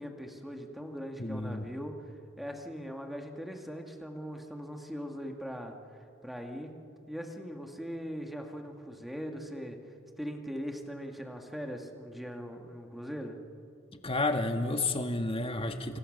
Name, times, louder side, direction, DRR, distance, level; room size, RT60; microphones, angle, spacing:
voice 1, 0.0-5.8 6.2-6.7 7.1-9.8 10.2-13.4, equal, ahead, 3 dB, 2.2 m, -40 dB
voice 2, 1.2-1.7 14.0-16.0, left 2 dB, 30° left, 6 dB, 1.7 m, -31 dB
28.0 x 27.0 x 6.8 m, 2.6 s
head